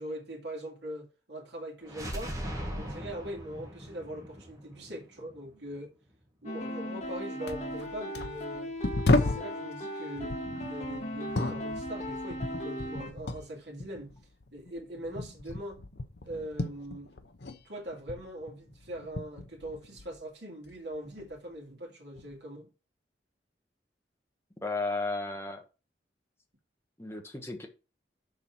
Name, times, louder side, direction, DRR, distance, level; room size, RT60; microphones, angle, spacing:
voice 1, 0.0-2.3 2.7-5.9 6.4-8.7 9.1-14.2 14.5-15.8 16.2-17.1 17.5-22.7, right 1 dB, 70° right, 2.3 m, -41 dB
sound 1, 1.8-5.7, equal, 20° right, 2.0 m, -39 dB
sound 2, 6.4-13.1, equal, 40° left, 1.7 m, -37 dB
sound 3, 7.0-7.2 7.5-9.5 10.2-13.5 13.8-17.6 17.9-20.2 20.7-21.4 22.2-22.3, left 2 dB, 65° left, 0.8 m, -33 dB
voice 2, 24.6-25.6 27.0-27.7, left 3 dB, 15° left, 1.2 m, -34 dB
6.7 x 4.2 x 5.9 m
head